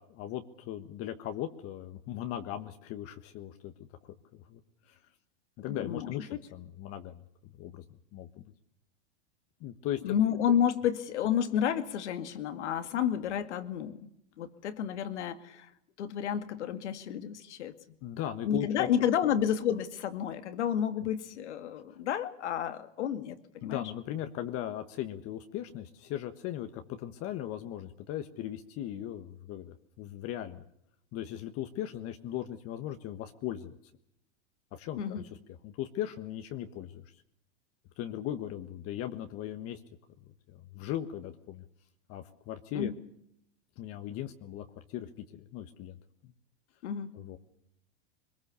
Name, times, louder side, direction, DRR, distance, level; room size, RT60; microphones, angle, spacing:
voice 1, 0.0-4.6 4.9-5.0 5.6-7.2 7.6-7.8 8.1-8.4 9.6-10.0 18.0-18.9 23.6-30.6 31.1-33.8 34.7-35.2 35.6-37.0 38.0-39.8 40.5-41.6 42.1-42.9 43.8-46.0 47.1-47.4, left 11 dB, 40° left, 7 dB, 1.4 m, -38 dB
voice 2, 5.7-6.1 10.0-14.1 14.4-15.7 16.0-17.7 18.5-23.4 23.6-23.8 35.0-35.2 42.7-42.9 46.8-47.2, left 9 dB, 75° left, 10 dB, 2.2 m, -30 dB
23.0 x 21.0 x 6.9 m, 0.76 s
hypercardioid pair, 115°, 35 cm